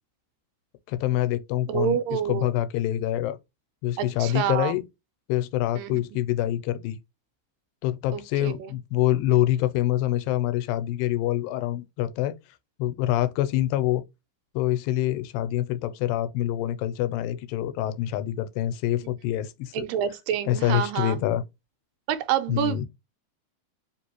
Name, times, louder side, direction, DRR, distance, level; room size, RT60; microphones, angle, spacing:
voice 1, 0.9-3.4 3.8-4.8 5.3-7.0 7.8-12.4 12.8-14.0 14.6-19.8 20.5-21.4 22.5-22.8, left 13 dB, 90° left, 2.3 m, -26 dB
voice 2, 1.7-2.5 4.0-4.7 5.7-6.2 8.1-8.7 9.3-9.4 19.7-21.2 22.1-22.8, right 10 dB, 85° right, 2.3 m, -28 dB
4.9 x 3.0 x 2.9 m
omnidirectional pair, 3.9 m